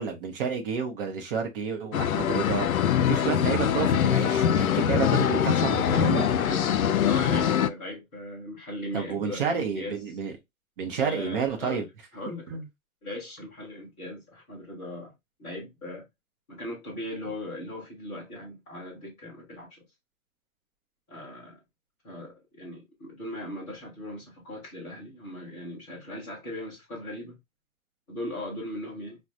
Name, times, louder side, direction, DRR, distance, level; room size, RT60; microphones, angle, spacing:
voice 1, 0.0-2.7 3.1-6.2 8.9-10.3 10.8-11.9 12.5-12.6, right 6 dB, 40° right, 0.8 m, -30 dB
sound 1, 1.9-7.7, left 9 dB, 75° left, 0.5 m, -23 dB
voice 2, 5.9-9.9 11.0-11.8 12.1-12.6 13.0-15.1 15.4-16.0 16.5-19.8 21.1-21.6 22.0-27.4 28.1-29.2, left 1 dB, 5° left, 0.3 m, -38 dB
4.9 x 2.3 x 2.4 m
figure-of-eight pair, 120°, 42 cm